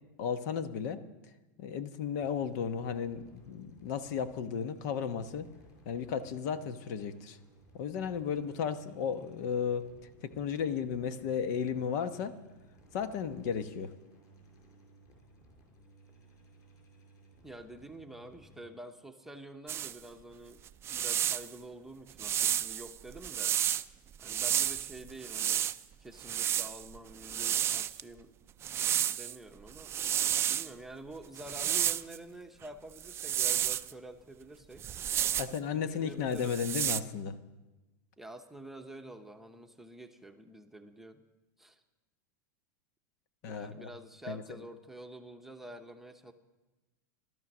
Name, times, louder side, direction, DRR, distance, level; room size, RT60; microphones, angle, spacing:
voice 1, 0.2-1.0 1.6-5.5 5.8-7.4 7.7-9.9 10.2-12.4 12.9-13.9 35.4-37.3 43.4-43.9 44.3-44.4, left 7 dB, 65° left, 11 dB, 1.1 m, -34 dB
sound 1, 2.2-18.6, right 1 dB, 35° left, 5.6 m, -60 dB
voice 2, 17.4-20.6 20.9-23.6 24.2-25.7 26.0-28.3 29.0-29.9 30.5-34.8 35.7-36.6 38.2-41.2 41.6-41.8 43.4-46.3, right 1 dB, 5° right, 5 dB, 0.9 m, -48 dB
sound 2, 19.7-20.0 20.7-21.5 22.2-23.8 24.2-25.8 26.2-28.0 28.6-29.4 29.7-30.7 31.4-32.2 33.0-33.9 34.8-35.6 36.4-37.0, right 10 dB, 25° right, 0.4 m, -31 dB
16.0 x 12.5 x 6.1 m, 1.1 s
supercardioid pair, 135°, 10 cm